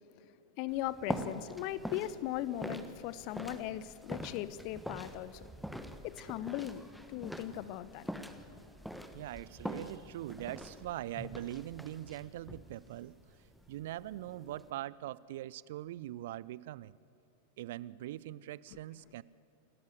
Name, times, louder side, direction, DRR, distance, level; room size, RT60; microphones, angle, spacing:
voice 1, 0.6-5.4 6.0-8.1, left 13 dB, 45° left, 17 dB, 0.9 m, -38 dB
sound 1, 0.7-14.7, equal, ahead, 1.3 m, -44 dB
voice 2, 9.1-13.2 13.7-17.0 17.6-19.2, right 14 dB, 55° right, 21 dB, 0.5 m, -42 dB
27.0 x 14.0 x 7.9 m, 2.7 s
figure-of-eight pair, 90°, 0 cm